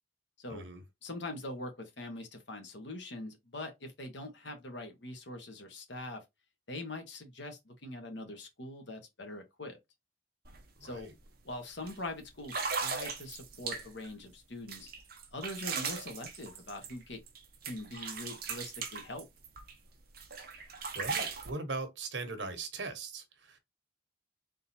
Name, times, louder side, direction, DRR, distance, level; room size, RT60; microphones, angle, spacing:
voice 1, 0.5-0.8 10.8-11.1 20.4-20.6 20.9-23.6, right 3 dB, 90° right, 1.2 m, -40 dB
voice 2, 1.0-6.2 6.7-9.8 10.8-11.1 11.4-14.9 15.3-17.2 17.7-19.3, left 2 dB, 75° left, 1.3 m, -43 dB
sound 1, 10.4-10.6 10.9-11.2 11.9-12.0 12.4-14.1 14.7-17.4 17.6-19.7 20.1-21.5, right 5 dB, 55° right, 0.9 m, -38 dB
3.8 x 3.7 x 2.7 m
head